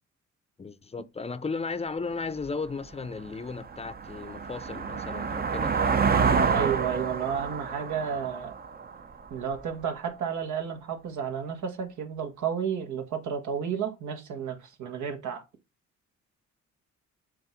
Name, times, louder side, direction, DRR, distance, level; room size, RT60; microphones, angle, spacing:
voice 1, 0.6-6.0, left 4 dB, 20° left, 0.6 m, -35 dB
sound 1, 2.4-2.5 3.0-9.6, right 5 dB, 30° right, 0.7 m, -28 dB
voice 2, 6.5-8.5 9.3-15.4, right 7 dB, 75° right, 1.6 m, -32 dB
7.6 x 2.6 x 5.7 m
cardioid pair, 90°, 30 cm